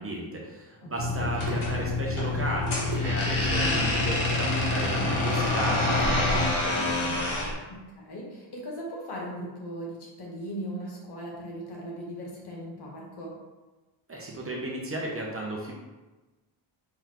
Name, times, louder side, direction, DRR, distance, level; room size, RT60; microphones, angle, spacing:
voice 1, 0.0-7.2 14.1-15.7, right 1 dB, 30° right, -2 dB, 0.7 m, -34 dB
Water tap faucet / Sink (filling or washing), 1.0-6.5, left 4 dB, 55° right, 1.1 m, -30 dB
voice 2, 1.2-1.5 7.7-13.3, right 1 dB, 55° left, -2 dB, 1.3 m, -38 dB
sound 1, 1.3-7.5, left 1 dB, 80° left, 1.4 m, -28 dB
4.5 x 3.9 x 2.9 m, 1.2 s
wide cardioid pair, 145°, 49 cm